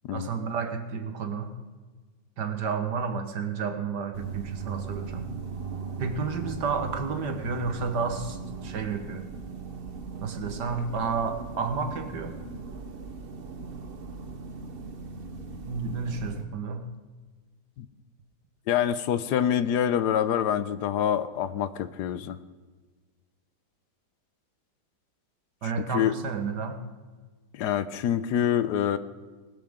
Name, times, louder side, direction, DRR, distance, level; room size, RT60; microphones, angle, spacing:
voice 1, 0.1-1.5 2.4-5.3 6.0-9.2 10.2-12.4 15.7-16.9 25.6-26.8, right 5 dB, 75° right, 6 dB, 1.9 m, -31 dB
sound 1, 4.1-16.4, right 4 dB, 40° right, 1.0 m, -39 dB
voice 2, 18.7-22.4 25.6-26.1 27.5-29.0, left 9 dB, 75° left, 13 dB, 1.2 m, -26 dB
20.5 x 12.5 x 3.7 m, 1.4 s
omnidirectional pair, 1.8 m